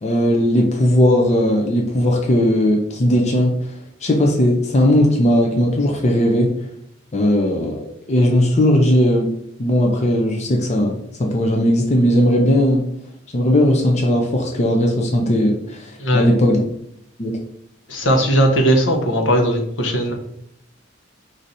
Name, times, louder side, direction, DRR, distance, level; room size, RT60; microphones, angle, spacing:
voice 1, 0.0-3.6 4.0-6.5 7.1-9.3 9.6-12.8 13.3-16.6 17.2-17.4, equal, 35° left, 1 dB, 0.6 m, -17 dB
voice 2, 17.9-20.1, equal, 75° left, 3 dB, 0.9 m, -17 dB
4.8 x 2.6 x 4.1 m, 0.73 s
head